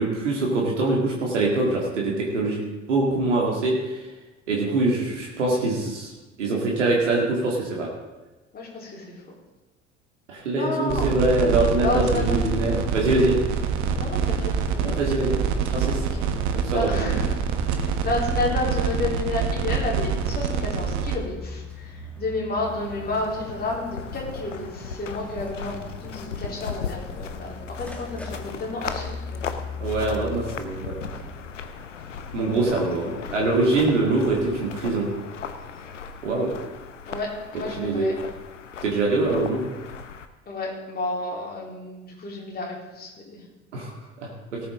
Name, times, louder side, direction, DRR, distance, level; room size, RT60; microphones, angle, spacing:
voice 1, 0.0-4.0 4.5-6.1 6.4-7.9 10.3-13.4 14.8-15.4 15.7-16.0 16.5-17.2 29.8-30.9 32.3-35.1 36.2-36.5 37.8-38.1 38.8-39.7 43.7-43.9 44.2-44.6, right 2 dB, 75° right, -2 dB, 2.3 m, -24 dB
voice 2, 8.5-9.1 10.6-11.1 11.8-12.9 14.0-15.1 16.2-16.3 16.7-17.3 17.7-29.6 37.1-38.1 40.5-43.4, left 2 dB, 25° left, -3 dB, 3.7 m, -31 dB
sound 1, 10.9-21.2, right 6 dB, 50° right, 1.4 m, -25 dB
sound 2, 21.2-31.3, left 3 dB, 5° left, 2.1 m, -39 dB
sound 3, 22.6-40.3, left 6 dB, 80° left, 0.8 m, -37 dB
18.0 x 8.5 x 3.8 m, 1.1 s
figure-of-eight pair, 60°, 36 cm